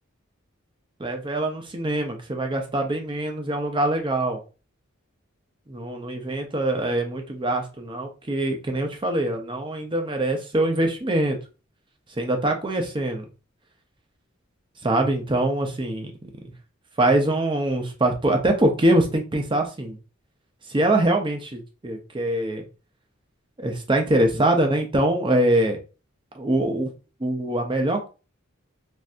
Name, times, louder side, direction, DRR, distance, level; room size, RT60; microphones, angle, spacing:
voice 1, 1.0-4.4 5.7-11.4 12.2-13.3 14.8-16.1 17.0-20.0 20.7-22.6 23.6-25.8 26.3-26.9 27.2-28.1, right 1 dB, 25° right, 4 dB, 0.6 m, -23 dB
3.3 x 2.6 x 2.5 m, 0.31 s
head